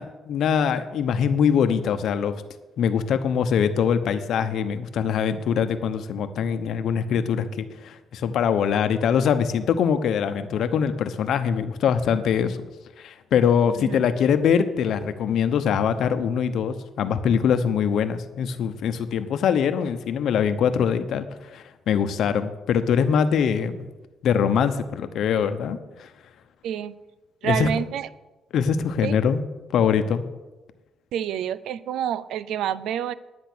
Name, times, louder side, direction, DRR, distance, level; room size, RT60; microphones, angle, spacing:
voice 1, 0.0-2.4 2.8-12.6 13.0-23.9 24.2-26.1 27.4-27.7 28.5-29.4 29.7-30.2, left 7 dB, 70° left, 10 dB, 0.9 m, -23 dB
voice 2, 26.6-27.0 27.4-28.1 29.0-29.2 31.1-33.1, right 9 dB, 85° right, 17 dB, 0.5 m, -28 dB
10.5 x 9.7 x 6.2 m, 1.1 s
cardioid pair, 90°, 0 cm